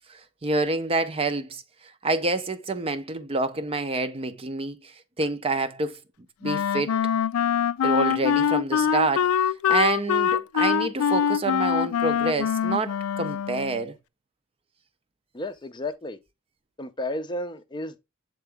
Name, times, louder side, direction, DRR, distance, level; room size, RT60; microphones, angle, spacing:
voice 1, 0.4-1.6 2.0-4.8 5.2-6.0 6.4-7.0 7.8-9.3 9.7-13.9, right 3 dB, 25° right, 0.5 m, -27 dB
Wind instrument woodwind instrument, 6.4-13.8, left 8 dB, 80° left, 0.3 m, -24 dB
voice 2, 15.3-16.2 16.8-18.0, left 1 dB, 20° left, 0.5 m, -32 dB
8.0 x 3.8 x 3.4 m
head